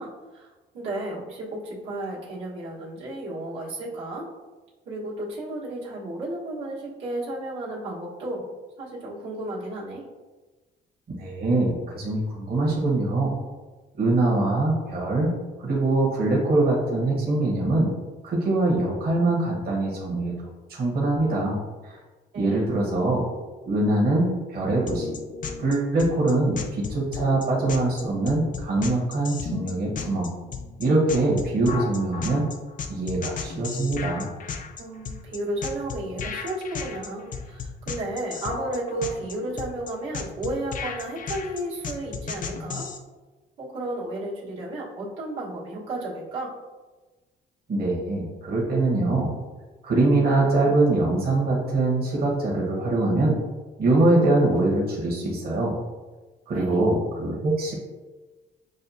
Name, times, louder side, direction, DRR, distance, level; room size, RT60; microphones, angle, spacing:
voice 1, 0.0-4.3 4.9-8.4 8.8-10.0 22.3-22.6 34.8-42.9 43.6-46.5 56.5-56.8, right 1 dB, 80° right, -8 dB, 1.4 m, -33 dB
voice 2, 11.1-13.3 14.0-15.3 15.6-17.9 18.2-20.3 20.7-21.6 21.9-22.0 22.3-23.2 23.7-25.1 25.6-30.3 30.8-32.4 32.9-34.3 47.7-49.3 49.8-53.4 53.8-55.7 56.5-57.7, right 2 dB, 50° right, -3 dB, 1.1 m, -23 dB
sound 1, 24.9-43.0, left 5 dB, 40° left, 0.5 m, -34 dB
6.3 x 2.3 x 2.7 m, 1.2 s
cardioid pair, 90°, 20 cm